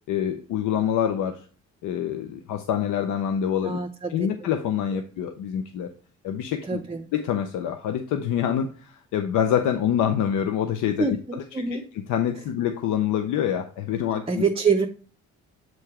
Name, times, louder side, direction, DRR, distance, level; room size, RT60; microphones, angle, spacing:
voice 1, 0.1-1.5 1.8-3.8 4.1-5.9 6.2-6.8 7.1-11.4 11.7-14.4, left 9 dB, 85° left, 6 dB, 0.6 m, -26 dB
voice 2, 3.6-4.1 4.9-5.0 6.6-7.1 11.0-11.8 14.3-14.9, right 5 dB, 20° right, 5 dB, 0.6 m, -25 dB
7.7 x 2.8 x 4.8 m, 0.40 s
cardioid pair, 90°, 30 cm